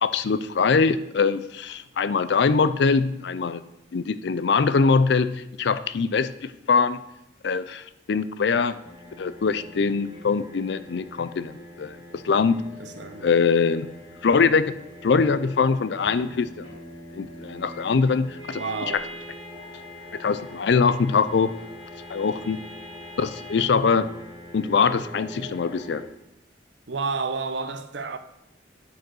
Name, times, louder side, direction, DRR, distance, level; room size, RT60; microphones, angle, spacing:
voice 1, 0.0-3.6 3.9-7.0 7.4-8.8 9.2-12.6 13.2-13.9 14.2-14.7 15.0-16.7 17.1-18.6 20.2-21.5 22.1-22.6 23.2-24.1 24.5-26.0, left 5 dB, 65° left, 0.4 m, -23 dB
sound 1, 8.8-26.0, equal, 30° left, 3.8 m, -43 dB
voice 2, 12.8-13.3 18.5-19.1 26.9-28.2, right 4 dB, 70° right, 0.7 m, -30 dB
9.1 x 4.7 x 6.2 m
head